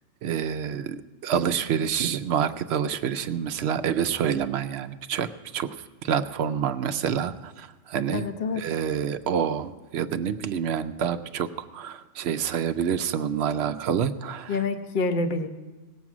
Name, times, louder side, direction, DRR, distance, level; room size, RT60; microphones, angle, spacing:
voice 1, 0.2-5.8 6.0-8.2 8.5-14.6, right 8 dB, 65° right, 11 dB, 0.7 m, -27 dB
voice 2, 8.1-8.6 14.5-15.5, left 3 dB, 45° left, 8 dB, 0.9 m, -27 dB
18.0 x 7.4 x 6.0 m, 1.2 s
omnidirectional pair, 1.3 m